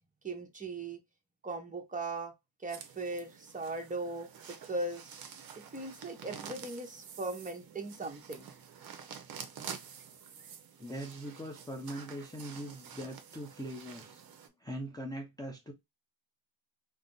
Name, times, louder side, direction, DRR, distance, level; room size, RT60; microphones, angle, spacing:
voice 1, 0.2-1.0 1.4-2.3 2.6-5.1 5.5-8.5, right 2 dB, 15° right, 0.8 m, -39 dB
sound 1, 2.7-14.5, right 7 dB, 50° right, 0.7 m, -49 dB
voice 2, 10.8-14.2 14.6-15.7, right 1 dB, 10° left, 0.6 m, -41 dB
2.5 x 2.1 x 3.7 m
cardioid pair, 110°, 46 cm